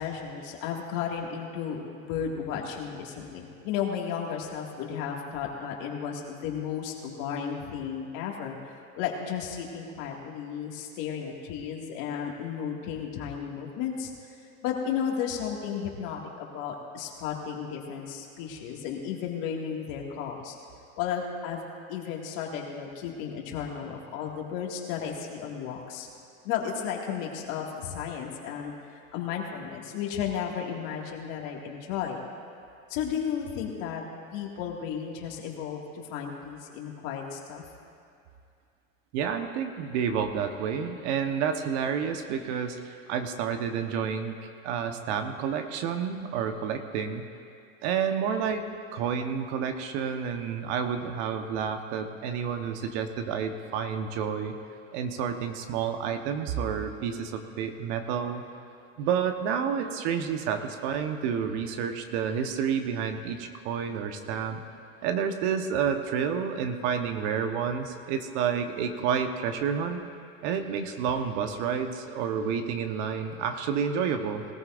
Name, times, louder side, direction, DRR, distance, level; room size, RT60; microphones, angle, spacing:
voice 1, 0.0-14.1 14.6-20.6 21.0-21.6 21.9-26.1 26.4-32.2 32.9-34.0 34.3-37.6, left 7 dB, 55° left, 0 dB, 2.2 m, -34 dB
voice 2, 39.1-44.4 44.6-47.3 47.8-54.6 54.9-58.4 59.0-64.6 65.0-70.0 70.4-74.5, right 7 dB, 55° right, 6 dB, 1.2 m, -30 dB
20.0 x 14.0 x 2.6 m, 2.5 s
hypercardioid pair, 115°, 40 cm